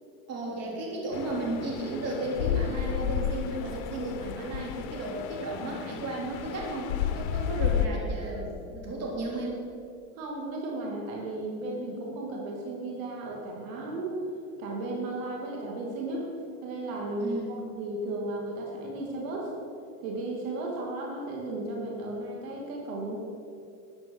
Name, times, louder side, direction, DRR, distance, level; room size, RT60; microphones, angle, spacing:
voice 1, 0.3-9.7 17.2-17.6, right 2 dB, 35° right, -2 dB, 3.3 m, -34 dB
sound 1, 1.1-7.9, left 9 dB, 75° left, 0.9 m, -32 dB
voice 2, 10.2-14.2 14.6-16.3 16.6-19.5 20.0-23.2, right 2 dB, 70° right, -1 dB, 2.8 m, -34 dB
13.5 x 9.0 x 5.6 m, 2.5 s
supercardioid pair, 135°, 42 cm